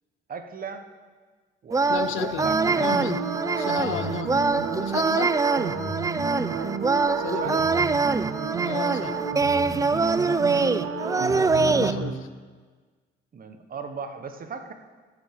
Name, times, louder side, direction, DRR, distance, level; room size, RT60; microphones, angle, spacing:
voice 1, 0.3-0.9 1.6-3.0 7.4-7.8 10.4-10.8 13.3-14.7, right 5 dB, 45° right, 7 dB, 1.3 m, -37 dB
sound 1, 1.7-11.9, right 4 dB, 15° right, 0.4 m, -24 dB
voice 2, 1.9-3.2 3.6-4.4 4.8-5.3 7.2-7.7 8.6-9.2 11.6-12.3, left 12 dB, 85° left, 13 dB, 0.7 m, -33 dB
sound 2, 2.3-12.1, right 5 dB, 75° right, 1.6 m, -31 dB
13.0 x 6.4 x 8.4 m, 1.4 s
cardioid pair, 90°, 20 cm